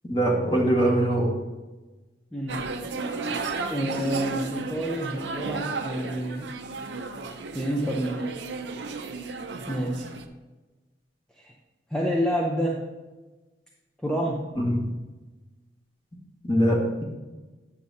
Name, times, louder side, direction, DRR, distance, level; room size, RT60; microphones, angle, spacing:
voice 1, 0.1-1.3 14.6-14.9 16.5-17.0, right 1 dB, 25° left, -3 dB, 1.7 m, -22 dB
voice 2, 2.3-2.7 3.7-6.5 7.5-8.4 9.7-10.1 11.4-11.5 11.9-12.9 14.0-14.5, equal, 5° left, -3 dB, 0.7 m, -28 dB
sound 1, 2.5-10.2, right 3 dB, 80° right, 0.7 m, -34 dB
9.8 x 7.5 x 2.8 m, 1.2 s
head